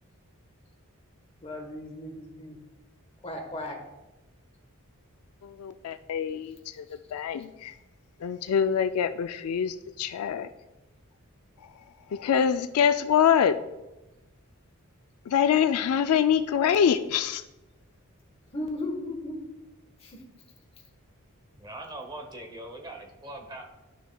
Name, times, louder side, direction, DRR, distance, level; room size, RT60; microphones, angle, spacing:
voice 1, 1.4-2.6 3.2-3.8 18.5-19.4 20.0-20.2, left 1 dB, 25° left, 2 dB, 1.1 m, -36 dB
voice 2, 5.4-7.7 8.2-10.5 12.1-13.6 15.3-17.4, left 8 dB, 75° left, 11 dB, 0.3 m, -25 dB
voice 3, 21.6-23.6, right 1 dB, 20° right, 3 dB, 0.8 m, -41 dB
12.0 x 6.0 x 2.3 m, 1.0 s
head